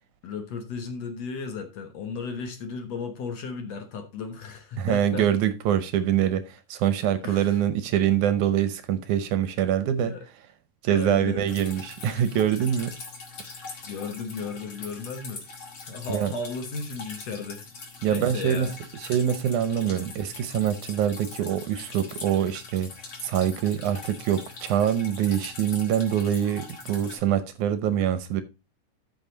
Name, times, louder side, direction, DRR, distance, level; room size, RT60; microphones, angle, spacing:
voice 1, 0.2-5.3 7.2-7.6 10.0-10.2 10.9-11.4 13.5-15.4 15.9-17.7 18.0-18.8, left 4 dB, 60° left, 2.1 m, -35 dB
voice 2, 4.8-10.1 10.8-13.0 16.1-16.3 18.0-18.7 19.0-22.9 23.2-28.4, right 9 dB, 75° right, 2.1 m, -24 dB
Drip, 11.5-27.2, left 4 dB, 45° left, 2.3 m, -42 dB
13.0 x 5.6 x 3.9 m
omnidirectional pair, 3.8 m